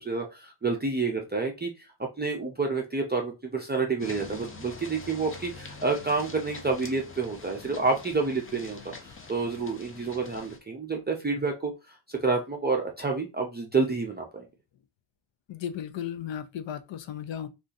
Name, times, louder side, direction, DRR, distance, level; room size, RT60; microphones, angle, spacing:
voice 1, 0.0-1.9 2.2-14.5, right 4 dB, 20° right, 0.4 m, -29 dB
sound 1, 4.0-10.6, left 3 dB, 25° left, 0.6 m, -44 dB
voice 2, 15.5-17.5, left 9 dB, 70° left, 0.6 m, -35 dB
2.6 x 2.5 x 3.8 m
wide cardioid pair, 145°, 48 cm